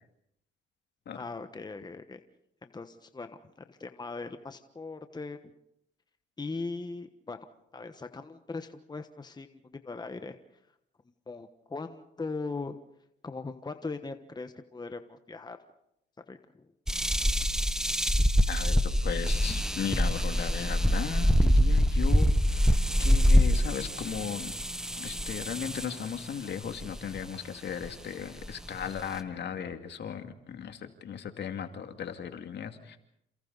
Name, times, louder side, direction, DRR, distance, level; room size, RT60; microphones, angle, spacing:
voice 1, 1.1-2.2 2.6-5.5 6.4-7.4 7.7-10.4 11.3-12.8 13.2-15.6 16.3-16.7, left 3 dB, 20° left, 8 dB, 1.3 m, -40 dB
sound 1, 16.9-26.0 26.8-27.2 27.9-28.0 28.4-29.2, equal, 5° right, 1.2 m, -25 dB
voice 2, 18.5-24.5 25.0-33.0, left 8 dB, 60° left, 6 dB, 2.4 m, -37 dB
28.5 x 28.5 x 4.1 m, 0.78 s
cardioid pair, 90°, 20 cm